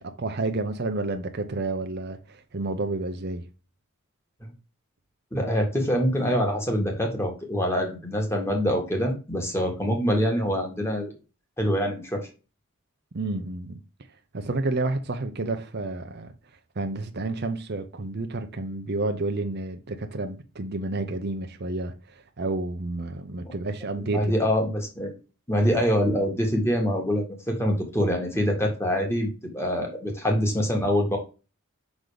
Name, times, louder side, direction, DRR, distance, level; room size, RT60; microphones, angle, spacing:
voice 1, 0.0-3.4 13.1-13.8 14.3-16.3 16.8-24.3, right 2 dB, 50° right, 0.7 m, -30 dB
voice 2, 5.3-11.1 11.6-12.3 23.4-23.5 24.1-25.1 25.5-31.2, equal, 10° left, 1.9 m, -25 dB
6.1 x 4.0 x 4.9 m
head